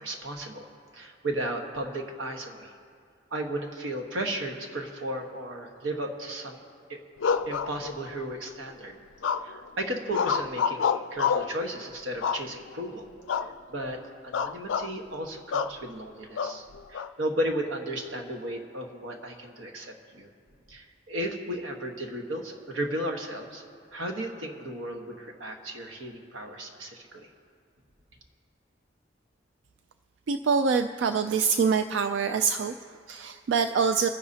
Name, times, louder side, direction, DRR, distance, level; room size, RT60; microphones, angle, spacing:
voice 1, 0.0-2.7 3.3-6.6 6.9-7.0 7.5-9.0 9.4-13.1 13.4-20.3 20.7-23.6 23.9-27.3, right 1 dB, 90° right, 3 dB, 1.3 m, -34 dB
sound 1, 7.2-8.2 9.2-9.7 10.1-11.6 12.2-12.8 13.3-13.5 13.8-14.0 14.3-14.9 15.5-15.8 16.4-17.1, left 6 dB, 75° left, 0.4 m, -28 dB
voice 2, 30.3-34.1, right 5 dB, 65° right, 8 dB, 0.3 m, -25 dB
25.5 x 10.5 x 2.8 m, 2.2 s
head